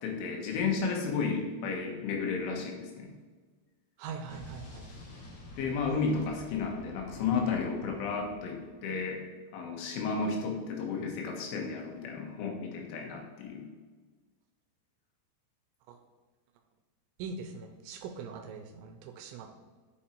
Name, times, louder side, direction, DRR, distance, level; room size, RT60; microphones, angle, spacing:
voice 1, 0.0-3.1 5.6-9.2 9.5-13.6, left 5 dB, 85° left, 1 dB, 3.8 m, -33 dB
voice 2, 4.0-4.9 15.9-16.0 17.2-19.5, right 5 dB, 85° right, 6 dB, 2.7 m, -42 dB
Explosion, 4.3-9.1, left 1 dB, 55° left, 3.5 m, -49 dB
8.9 x 5.1 x 4.4 m, 1.4 s
omnidirectional pair, 5.5 m